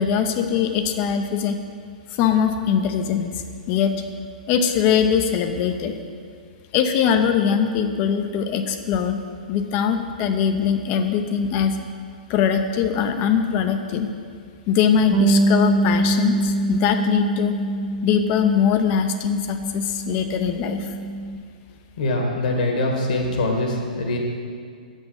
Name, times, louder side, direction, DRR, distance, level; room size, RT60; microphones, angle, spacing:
voice 1, 0.0-1.6 2.1-3.3 3.7-4.0 4.5-6.0 6.7-9.2 9.5-11.8 12.3-14.1 14.7-17.6 18.0-20.9, left 7 dB, 40° left, 7 dB, 0.7 m, -21 dB
Bass guitar, 15.1-21.4, right 2 dB, 45° right, 0.8 m, -24 dB
voice 2, 22.0-24.2, left 2 dB, 65° left, 1 dB, 1.8 m, -23 dB
7.8 x 6.3 x 5.7 m, 2.2 s
hypercardioid pair, 115°, 5 cm